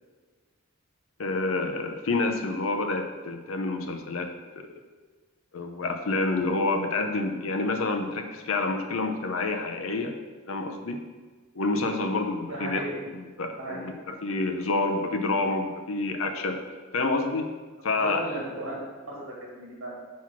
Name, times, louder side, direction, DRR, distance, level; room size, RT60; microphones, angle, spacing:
voice 1, 1.2-4.3 4.6-4.7 5.5-10.2 10.5-11.0 11.5-12.9 13.1-16.6 16.9-17.5 17.8-18.3, left 3 dB, 75° left, 5 dB, 0.6 m, -28 dB
voice 2, 12.5-13.0 13.6-13.9 17.9-18.7 19.1-19.9, right 1 dB, 80° right, -3 dB, 1.7 m, -35 dB
6.0 x 4.2 x 5.8 m, 1.4 s
head